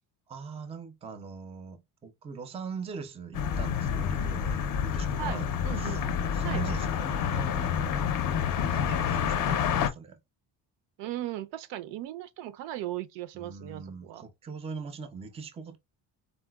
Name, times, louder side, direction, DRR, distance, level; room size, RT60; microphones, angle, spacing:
voice 1, 0.3-5.5 5.7-8.1 8.7-10.2 13.3-15.8, right 6 dB, 15° right, 0.3 m, -41 dB
sound 1, 3.3-9.9, left 7 dB, 50° left, 0.5 m, -28 dB
voice 2, 5.2-6.1 6.4-6.6 11.0-14.2, right 13 dB, 85° right, 0.5 m, -37 dB
3.9 x 2.1 x 2.2 m
cardioid pair, 135°, 42 cm